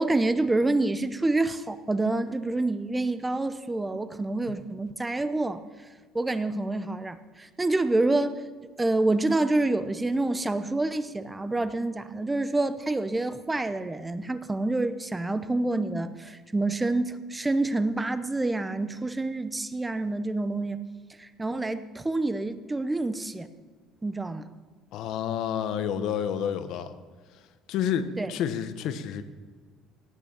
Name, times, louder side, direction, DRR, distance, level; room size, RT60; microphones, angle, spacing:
voice 1, 0.0-5.6 6.1-8.4 8.8-20.8 21.2-23.5 24.0-24.5 28.2-28.3, right 2 dB, 10° right, 12 dB, 0.8 m, -27 dB
voice 2, 24.9-26.9 27.7-29.2, left 8 dB, 65° left, 10 dB, 1.1 m, -29 dB
18.0 x 6.2 x 8.7 m, 1.5 s
cardioid pair, 125°, 0 cm